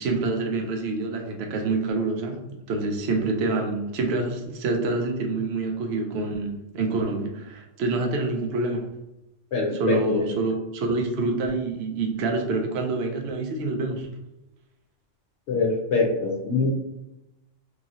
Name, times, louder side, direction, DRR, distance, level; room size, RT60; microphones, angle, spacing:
voice 1, 0.0-2.4 2.7-8.9 9.8-14.1, right 3 dB, 65° right, 2 dB, 0.8 m, -27 dB
voice 2, 9.5-10.3 15.5-16.7, left 3 dB, 70° left, -2 dB, 0.8 m, -24 dB
3.0 x 2.8 x 2.4 m, 0.89 s
omnidirectional pair, 1.3 m